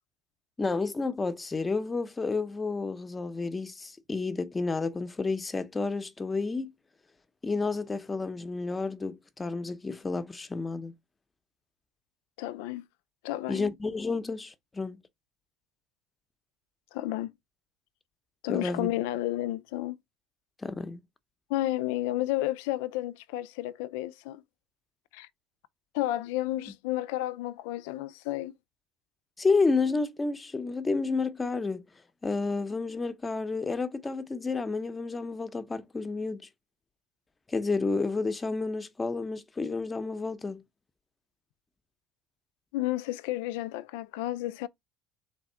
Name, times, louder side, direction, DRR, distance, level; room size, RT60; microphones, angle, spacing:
voice 1, 0.6-6.7 7.4-10.9 13.5-15.0 18.5-18.9 20.6-21.0 29.4-31.9 32.2-36.4 37.5-40.6, left 3 dB, 15° left, 0.7 m, -30 dB
voice 2, 12.4-12.9 13.2-13.7 16.9-17.3 18.4-20.0 21.5-24.4 25.1-25.3 25.9-28.5 42.7-44.7, left 15 dB, 85° left, 0.3 m, -31 dB
3.6 x 3.4 x 4.3 m
supercardioid pair, 115°, 0 cm